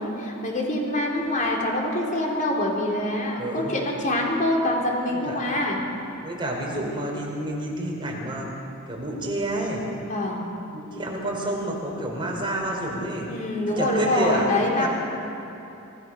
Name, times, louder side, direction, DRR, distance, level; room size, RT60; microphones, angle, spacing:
voice 1, 0.0-5.8 10.0-10.4 13.3-14.9, left 1 dB, 40° left, -1 dB, 4.0 m, -25 dB
voice 2, 3.4-3.8 5.1-5.4 6.2-8.5 8.9-9.8 10.7-13.3 13.7-14.9, right 1 dB, 25° right, -2 dB, 4.9 m, -29 dB
26.0 x 17.0 x 6.6 m, 3.0 s
head